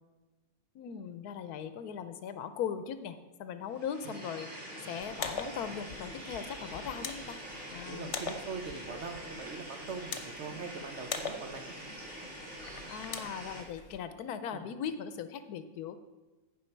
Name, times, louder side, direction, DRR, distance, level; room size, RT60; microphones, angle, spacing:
voice 1, 0.7-7.4 7.7-8.1 12.9-16.0, left 8 dB, 80° left, 11 dB, 1.2 m, -39 dB
sound 1, 3.7-13.6, right 1 dB, 35° right, 3.5 m, -45 dB
sound 2, 5.0-14.0, left 5 dB, 55° left, 1.1 m, -43 dB
voice 2, 7.9-11.6 14.5-14.7, right 4 dB, 55° right, 5 dB, 1.0 m, -42 dB
15.0 x 5.3 x 4.5 m, 1.2 s
omnidirectional pair, 1.6 m